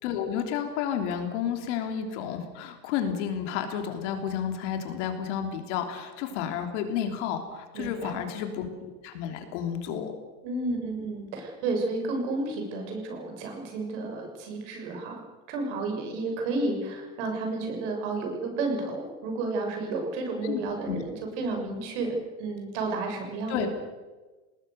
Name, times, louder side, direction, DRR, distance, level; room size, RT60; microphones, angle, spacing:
voice 1, 0.0-10.1 20.4-20.6 20.9-21.0 23.5-23.7, left 8 dB, 50° left, 5 dB, 3.3 m, -31 dB
voice 2, 7.7-8.2 10.4-15.2 15.5-23.7, right 3 dB, 50° right, 3 dB, 6.9 m, -31 dB
27.5 x 19.5 x 6.7 m, 1.2 s
supercardioid pair, 180°, 45 cm